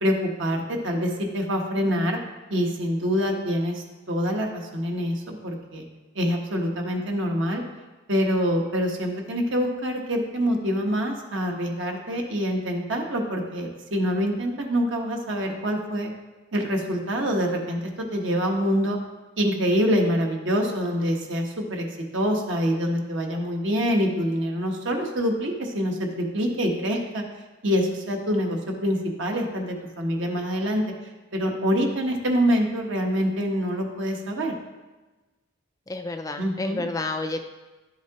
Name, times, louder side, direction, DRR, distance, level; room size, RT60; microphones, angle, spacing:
voice 1, 0.0-2.2 2.5-5.8 6.1-7.6 8.1-16.1 16.5-17.8 18.1-19.0 19.4-21.9 22.1-27.2 27.6-30.8 31.3-34.5 36.4-36.9, equal, 70° right, 1 dB, 1.2 m, -25 dB
voice 2, 35.9-37.4, left 2 dB, 15° left, 6 dB, 0.3 m, -30 dB
11.0 x 7.4 x 2.9 m, 1.2 s
head